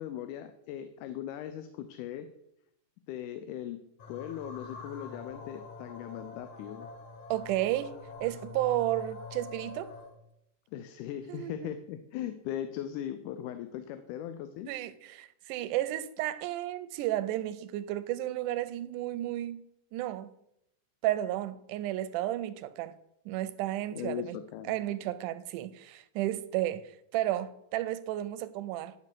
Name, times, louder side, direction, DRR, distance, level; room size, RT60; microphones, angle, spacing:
voice 1, 0.0-2.3 3.1-6.9 10.7-14.7 23.9-24.8, left 10 dB, 85° left, 2.1 m, -39 dB
sound 1, 4.0-10.2, left 4 dB, 60° left, 1.8 m, -45 dB
voice 2, 7.3-8.0 8.2-9.9 11.3-11.8 14.7-19.6 19.9-20.3 21.0-23.0 23.3-24.4 24.7-28.9, right 14 dB, 90° right, 2.1 m, -32 dB
10.5 x 5.8 x 4.6 m
omnidirectional pair, 3.6 m